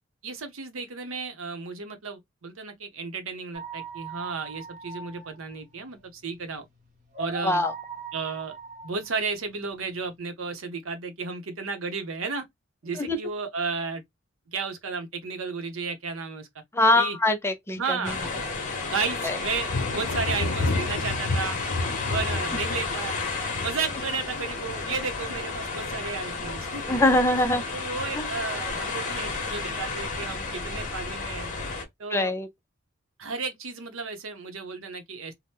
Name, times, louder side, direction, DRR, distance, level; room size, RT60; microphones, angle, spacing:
voice 1, 0.2-6.7 7.2-7.6 8.1-8.6 8.8-12.5 12.8-14.0 14.5-16.5 17.0-17.2 17.7-18.3 18.8-21.6 22.1-23.2 23.6-27.2 27.7-31.5 32.0-32.3 33.2-35.3, right 4 dB, 75° right, 0.7 m, -33 dB
sound 1, 3.5-10.1, right 4 dB, 40° right, 0.9 m, -40 dB
voice 2, 16.7-18.0 19.2-19.4 26.8-27.6 28.1-28.3 32.1-32.5, left 2 dB, 10° left, 0.5 m, -23 dB
sound 2, 18.0-31.8, left 4 dB, 40° left, 1.0 m, -32 dB
Thunder, 19.6-26.1 26.5-27.0 27.5-28.3, left 2 dB, 70° left, 0.6 m, -32 dB
2.8 x 2.1 x 3.4 m
head